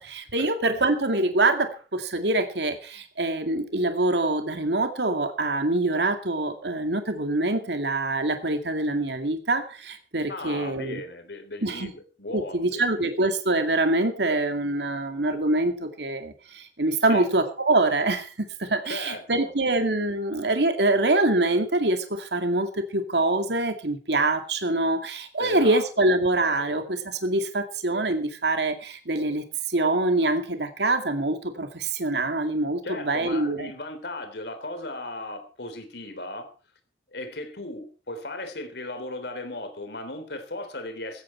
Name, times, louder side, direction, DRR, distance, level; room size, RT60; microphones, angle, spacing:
voice 1, 0.0-11.0 11.6-11.9 12.3-18.3 18.6-33.7, right 2 dB, 70° right, 7 dB, 2.2 m, -25 dB
voice 2, 10.3-12.9 17.1-17.3 18.9-19.5 25.4-26.0 26.6-26.8 32.8-36.5 37.1-41.2, left 2 dB, 65° left, 8 dB, 3.6 m, -36 dB
16.0 x 14.5 x 4.5 m, 0.35 s
head